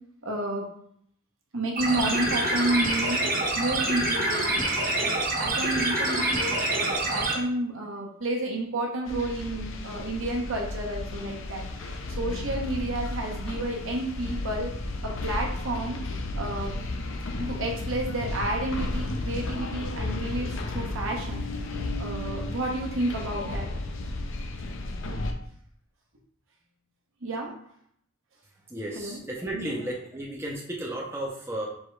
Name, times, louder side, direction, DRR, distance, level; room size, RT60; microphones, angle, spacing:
voice 1, 0.2-0.7 1.5-3.2 3.5-4.6 5.0-11.6 12.2-14.7 15.0-16.0 16.3-16.8 17.4-21.4 22.0-23.7 27.2-27.5 29.0-29.2 29.5-29.7, right 1 dB, 70° right, -1 dB, 1.0 m, -31 dB
sound 1, 1.8-7.3, right 1 dB, 40° right, 1.0 m, -26 dB
sound 2, 9.1-25.3, left 2 dB, 65° left, 0.5 m, -33 dB
voice 2, 28.7-31.7, right 1 dB, 10° right, -2 dB, 0.5 m, -33 dB
4.6 x 3.4 x 3.2 m, 0.67 s
head